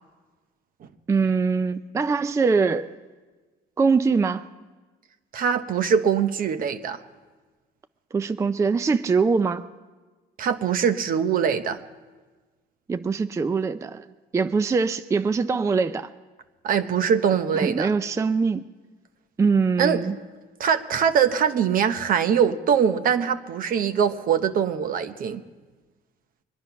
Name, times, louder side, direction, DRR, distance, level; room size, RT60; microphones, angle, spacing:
voice 1, 1.1-2.9 3.8-4.4 8.1-9.7 12.9-14.0 14.3-16.1 17.5-18.6 19.4-20.2, right 4 dB, 15° right, 12 dB, 0.4 m, -22 dB
voice 2, 5.3-7.0 10.4-11.8 16.6-17.9 19.8-20.0 20.6-25.4, right 7 dB, 55° right, 10 dB, 0.9 m, -22 dB
23.0 x 10.5 x 5.8 m, 1.3 s
cardioid pair, 110°, 17 cm